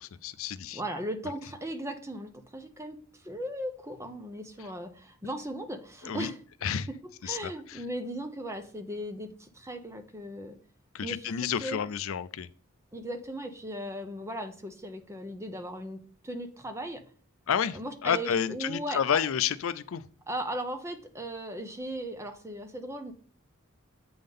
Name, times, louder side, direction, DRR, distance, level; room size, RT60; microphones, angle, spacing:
voice 1, 0.0-0.8 6.0-6.3 6.6-6.9 7.2-7.8 10.9-12.5 17.5-20.1, left 8 dB, 70° left, 14 dB, 0.4 m, -30 dB
voice 2, 0.7-6.4 6.9-10.6 11.0-11.3 11.6-11.8 12.9-17.1 17.7-19.2 20.3-23.1, right 1 dB, 15° right, 6 dB, 0.8 m, -37 dB
7.8 x 3.7 x 5.3 m, 0.43 s
head